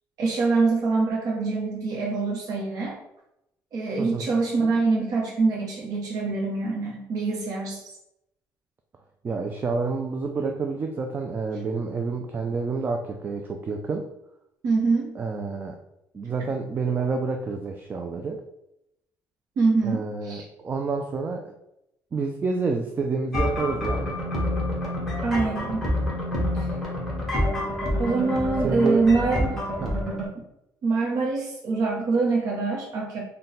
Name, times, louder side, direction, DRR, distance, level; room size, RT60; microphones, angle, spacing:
voice 1, 0.2-3.0 3.7-8.0 14.6-15.1 19.6-20.4 25.2-25.9 26.5-26.7 28.0-29.6 30.8-33.2, right 3 dB, 60° right, -3 dB, 0.7 m, -24 dB
voice 2, 4.0-4.3 9.2-14.1 15.2-15.8 16.1-18.4 19.8-21.5 22.1-24.2 28.6-29.1 29.8-30.0, right 4 dB, 25° right, 3 dB, 0.3 m, -28 dB
sound 1, 23.3-30.3, left 1 dB, ahead, 1.3 m, -27 dB
3.8 x 2.2 x 4.0 m, 0.83 s
cardioid pair, 140°, 7 cm